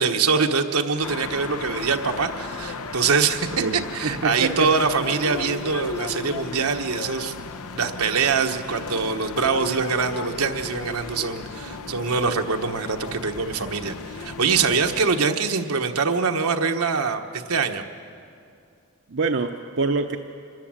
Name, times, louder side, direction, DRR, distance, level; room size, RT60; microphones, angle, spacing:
voice 1, 0.0-7.3 7.7-17.8, right 5 dB, 80° right, 5 dB, 1.2 m, -24 dB
sound 1, 1.0-15.2, left 3 dB, 85° left, 0.9 m, -35 dB
voice 2, 3.5-4.9 19.1-20.2, right 3 dB, 60° right, 4 dB, 0.8 m, -26 dB
26.0 x 13.5 x 8.9 m, 2.4 s
head